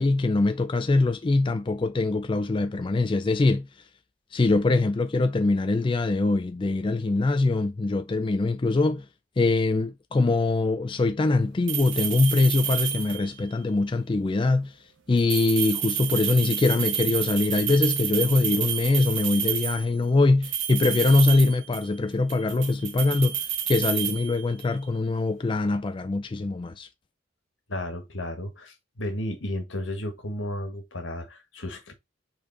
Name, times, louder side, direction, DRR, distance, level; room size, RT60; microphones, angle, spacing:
voice 1, 0.0-3.7 4.3-9.0 9.4-14.7 15.1-26.9, left 3 dB, 25° left, 0.4 m, -23 dB
sound 1, 11.7-13.4 15.2-19.9 20.4-22.0 22.3-24.8, right 9 dB, 75° right, 1.4 m, -30 dB
voice 2, 27.7-31.9, left 1 dB, 75° left, 1.8 m, -33 dB
5.2 x 4.4 x 4.2 m
head